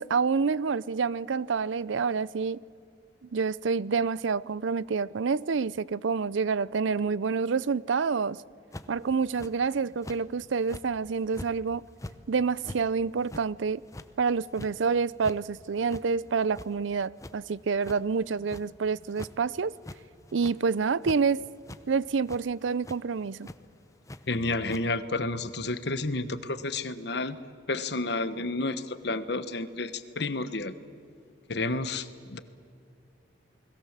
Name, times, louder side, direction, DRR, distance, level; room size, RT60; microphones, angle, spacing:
voice 1, 0.0-2.6 3.3-8.4 8.9-11.8 12.3-13.8 14.2-19.7 20.3-21.4 21.9-23.5, right 5 dB, 80° right, 0.5 m, -28 dB
sound 1, 8.7-9.0 9.4-9.5 10.0-10.2 10.6-10.9 11.3-11.5 11.9-12.1 12.6-12.8 13.2-13.4 13.9-14.1 14.5-14.7 15.1-15.4 15.9-16.0 16.4-16.9 17.2-17.3 17.8-18.0 18.5-18.6 19.1-19.3 19.8-20.0 20.3-20.6 21.0-21.2 21.6-21.8 22.3-22.4 22.8-23.0 23.4-23.6 24.1-24.2 24.7-24.8, left 1 dB, 15° left, 0.8 m, -42 dB
voice 2, 24.3-27.4 27.7-30.7 31.5-32.4, left 2 dB, 60° left, 1.2 m, -31 dB
29.0 x 21.0 x 7.4 m
head